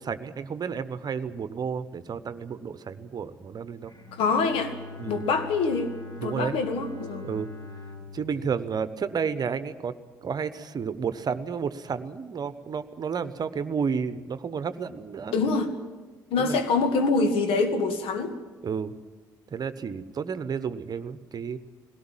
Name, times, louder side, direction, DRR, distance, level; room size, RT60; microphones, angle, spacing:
voice 1, 0.0-3.9 5.0-5.2 6.2-6.5 7.2-7.5 8.1-10.0 10.2-15.4 16.4-16.6 18.6-18.9 19.5-21.6, right 6 dB, 40° right, 13 dB, 1.0 m, -31 dB
Bowed string instrument, 3.8-9.8, left 3 dB, 45° left, 5.7 m, -44 dB
voice 2, 4.1-4.7 5.1-6.0 6.2-7.3 15.3-15.7 16.3-18.3, left 4 dB, 65° left, 7 dB, 2.0 m, -25 dB
19.5 x 17.5 x 9.0 m, 1.4 s
hypercardioid pair, 50°, 10 cm